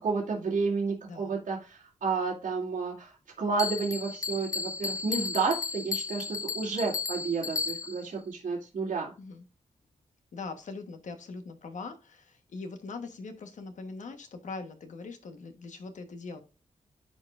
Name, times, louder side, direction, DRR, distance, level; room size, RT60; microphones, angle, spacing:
voice 1, 0.0-9.1, right 4 dB, 70° right, -5 dB, 2.3 m, -31 dB
Bell, 3.6-8.1, left 4 dB, 25° left, 0.4 m, -34 dB
voice 2, 10.3-16.4, left 4 dB, 70° left, 7 dB, 1.2 m, -41 dB
13.0 x 4.7 x 2.5 m, 0.31 s
wide cardioid pair, 165°, 13 cm